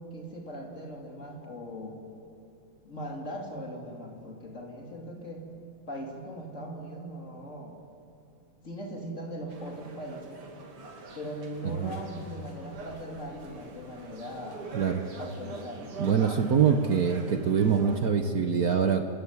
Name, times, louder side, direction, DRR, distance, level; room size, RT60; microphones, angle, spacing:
voice 1, 0.0-2.0 2.8-5.5 5.9-7.8 8.6-10.4 11.2-14.7 15.2-15.9, equal, 35° left, 1 dB, 3.4 m, -39 dB
sound 1, 9.5-18.0, right 3 dB, 80° right, 3.3 m, -43 dB
voice 2, 14.7-15.0 16.0-19.1, right 6 dB, 55° right, 6 dB, 1.2 m, -24 dB
28.0 x 14.5 x 9.7 m, 2.5 s
omnidirectional pair, 2.4 m